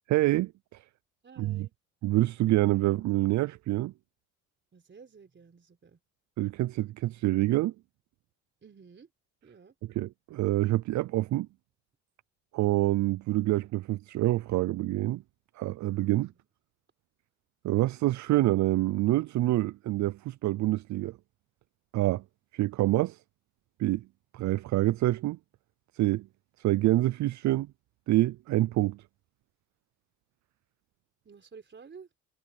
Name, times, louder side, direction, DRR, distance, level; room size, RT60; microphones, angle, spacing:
voice 1, 0.1-0.8 1.4-1.7 2.0-3.9 6.4-7.7 9.9-11.5 12.5-15.2 15.6-16.3 17.6-21.2 21.9-22.2 22.5-23.2 23.8-24.0 24.3-25.4 26.0-26.3 26.6-27.7 28.1-29.0, right 16 dB, 70° right, 0.5 m, -26 dB
voice 2, 1.2-1.7 4.7-6.0 8.6-9.1 9.4-9.7 16.2-16.4 31.2-32.1, right 5 dB, 40° right, 4.3 m, -52 dB
cardioid pair, 90°, 30 cm